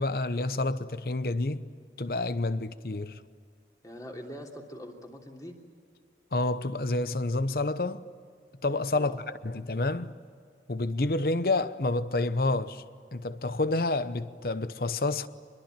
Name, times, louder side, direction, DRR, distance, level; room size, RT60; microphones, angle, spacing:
voice 1, 0.0-1.7 2.0-3.2 6.3-8.1 8.6-9.2 9.4-10.1 10.7-12.8 13.1-15.3, left 2 dB, 55° left, 0.9 m, -29 dB
voice 2, 3.8-5.6 8.9-9.2, equal, 20° left, 3.1 m, -43 dB
25.0 x 22.0 x 9.1 m
head